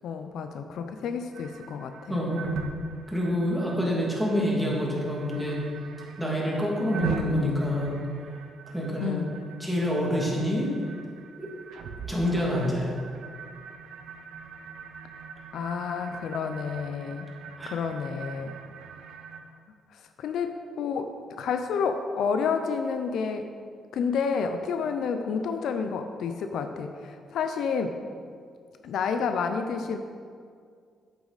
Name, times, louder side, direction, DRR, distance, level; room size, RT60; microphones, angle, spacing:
voice 1, 0.0-2.2 9.0-9.4 15.5-17.3 17.6-18.6 20.2-21.1 21.4-23.5 23.9-28.0 28.8-30.0, left 6 dB, 75° left, 7 dB, 0.5 m, -30 dB
sound 1, 1.3-19.4, right 4 dB, 80° right, 0.7 m, -39 dB
voice 2, 2.1-2.6 3.1-5.6 6.2-8.0 8.7-9.2 9.6-10.7 11.4-11.5 12.1-12.9 17.6-17.7, equal, ahead, -4 dB, 2.3 m, -27 dB
8.3 x 8.1 x 4.1 m, 2.1 s
cardioid pair, 90°, 0 cm